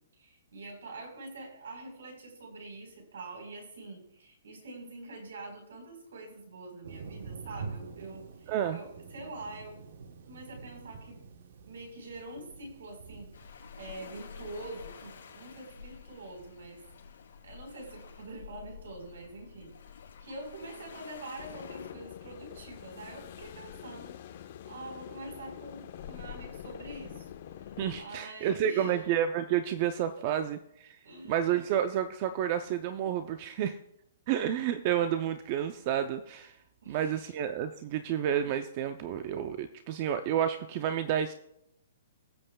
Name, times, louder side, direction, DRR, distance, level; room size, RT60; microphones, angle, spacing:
voice 1, 0.2-9.8 10.3-11.2 11.6-13.3 13.8-16.8 17.4-24.2 24.6-27.3 27.6-29.0 30.2-30.3 31.0-31.3 36.8-37.3 38.0-38.1, right 2 dB, 75° right, 2 dB, 4.0 m, -45 dB
Thunder, 6.8-15.6, right 5 dB, 55° right, 1.0 m, -47 dB
voice 2, 8.5-8.8 27.8-31.0 31.3-33.8 34.3-36.5 36.9-41.3, right 10 dB, 30° right, 10 dB, 0.4 m, -30 dB
Waves surf, 13.3-21.9, left 6 dB, 75° left, 3.5 m, -50 dB
sound 1, 21.4-28.0, left 10 dB, 40° left, 0.6 m, -45 dB
22.5 x 7.7 x 2.2 m, 0.78 s
hypercardioid pair, 175°, 0 cm